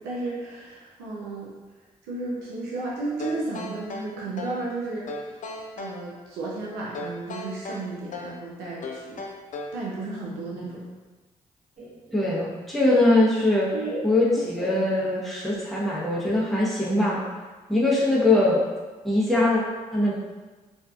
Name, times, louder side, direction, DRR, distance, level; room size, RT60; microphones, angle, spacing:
voice 1, 0.0-1.5 2.1-5.1 5.8-9.2 9.7-10.8, right 2 dB, 90° right, -4 dB, 0.4 m, -33 dB
sound 1, 3.2-4.7 5.1-6.0 6.9-8.4 8.8-9.8, left 2 dB, 50° left, 0.4 m, -36 dB
Laughter, 11.8-15.4, right 2 dB, 40° right, 0.9 m, -38 dB
voice 2, 12.1-13.7 14.0-17.2 17.7-18.6 19.0-19.6 19.9-20.1, left 2 dB, ahead, -7 dB, 0.7 m, -22 dB
2.5 x 2.3 x 2.3 m, 1.3 s
hypercardioid pair, 40°, 17 cm